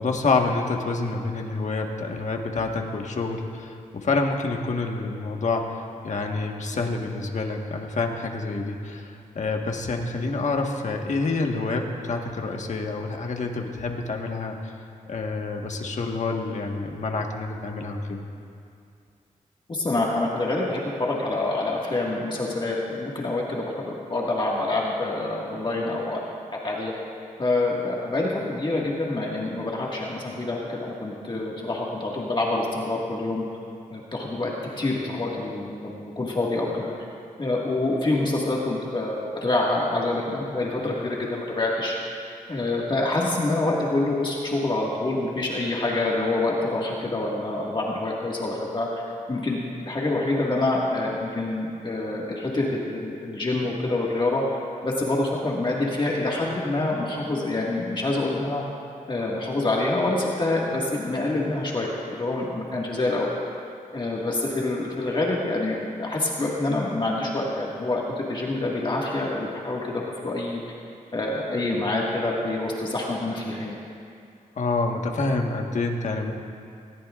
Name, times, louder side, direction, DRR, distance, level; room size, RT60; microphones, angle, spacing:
voice 1, 0.0-14.7 15.1-18.2 74.5-76.3, left 3 dB, 60° left, 2 dB, 1.5 m, -27 dB
voice 2, 19.7-26.2 26.6-26.9 27.4-33.5 33.9-34.5 34.8-36.9 37.4-42.0 42.5-48.9 49.3-54.4 54.8-58.6 59.1-63.3 63.9-70.6 71.1-73.8, left 2 dB, 35° left, -4 dB, 1.9 m, -26 dB
20.5 x 18.5 x 2.5 m, 2.4 s
wide cardioid pair, 90°, 14 cm